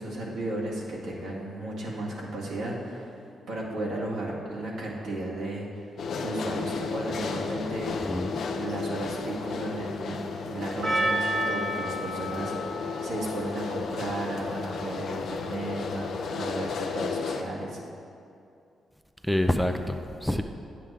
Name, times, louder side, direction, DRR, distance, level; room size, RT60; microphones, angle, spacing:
voice 1, 0.0-3.2 3.5-5.6 6.2-8.1 8.5-17.8, right 1 dB, 85° right, -6 dB, 2.1 m, -34 dB
sound 1, 6.0-17.4, left 4 dB, 70° left, 0.6 m, -33 dB
voice 2, 7.9-8.4 19.2-20.4, left 1 dB, ahead, 6 dB, 0.5 m, -27 dB
Percussion, 10.8-15.4, right 1 dB, 50° right, 1.8 m, -32 dB
9.6 x 7.6 x 3.5 m, 2.5 s
cardioid pair, 75°, 0 cm